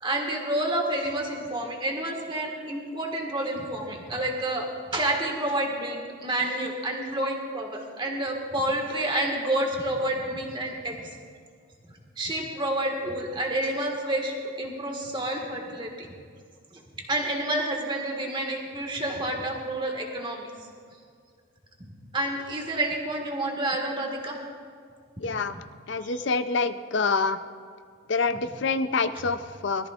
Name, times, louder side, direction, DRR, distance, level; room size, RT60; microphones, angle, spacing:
voice 1, 0.0-10.9 12.2-16.1 16.7-16.8 17.1-20.5 21.8-24.4 25.2-25.6 26.0-26.2 29.1-29.2, right 1 dB, 25° right, 1 dB, 1.7 m, -29 dB
voice 2, 25.2-25.6 25.9-27.4 28.1-29.9, left 4 dB, 55° left, 11 dB, 0.5 m, -26 dB
21.0 x 14.0 x 2.5 m, 2.1 s
head